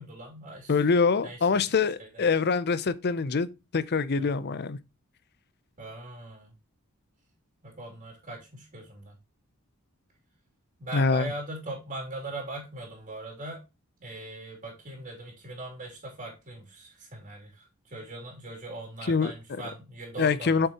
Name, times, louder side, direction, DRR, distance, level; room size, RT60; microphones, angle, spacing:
voice 1, 0.0-0.7 1.2-1.6 2.0-2.2 4.2-4.3 5.8-6.5 7.6-9.1 10.8-13.6 14.0-20.7, right 2 dB, 40° right, 2.8 m, -40 dB
voice 2, 0.7-3.5 3.7-4.8 10.9-11.3 19.1-19.3 20.2-20.7, left 4 dB, 45° left, 0.5 m, -24 dB
7.3 x 5.5 x 2.9 m
head